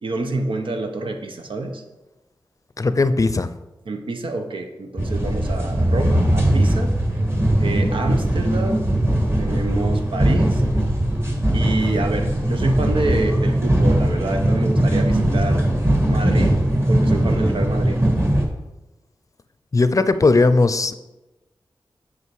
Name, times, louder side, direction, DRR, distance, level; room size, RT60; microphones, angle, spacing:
voice 1, 0.0-1.8 3.9-6.9 7.6-8.9 9.4-10.6 11.5-15.7 16.0-18.0, right 2 dB, 80° right, 5 dB, 1.0 m, -27 dB
voice 2, 2.8-3.5 19.7-20.9, left 3 dB, 40° left, 12 dB, 0.5 m, -17 dB
sound 1, 5.0-18.4, right 1 dB, 30° right, 1.8 m, -19 dB
8.3 x 5.5 x 4.7 m, 1.0 s
wide cardioid pair, 65°, 9 cm